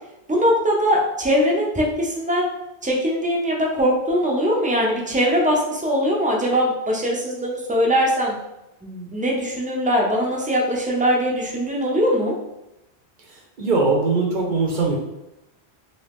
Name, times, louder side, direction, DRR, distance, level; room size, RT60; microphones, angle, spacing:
voice 1, 0.3-2.5 2.8-8.4 8.8-12.3, equal, 10° right, -2 dB, 0.3 m, -21 dB
voice 2, 13.3-15.0, right 3 dB, 55° right, 0 dB, 0.6 m, -21 dB
2.7 x 2.7 x 3.4 m, 0.92 s
omnidirectional pair, 1.1 m